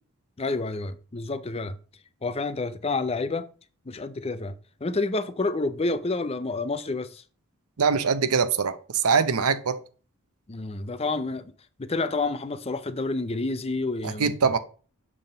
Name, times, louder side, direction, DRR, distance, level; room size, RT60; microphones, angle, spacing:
voice 1, 0.4-1.8 2.2-3.5 3.9-4.5 4.8-7.2 10.5-11.5 11.8-14.5, left 3 dB, 25° left, 0.5 m, -29 dB
voice 2, 7.8-9.8 14.0-14.6, right 5 dB, 80° right, 0.8 m, -23 dB
7.8 x 3.6 x 6.6 m
head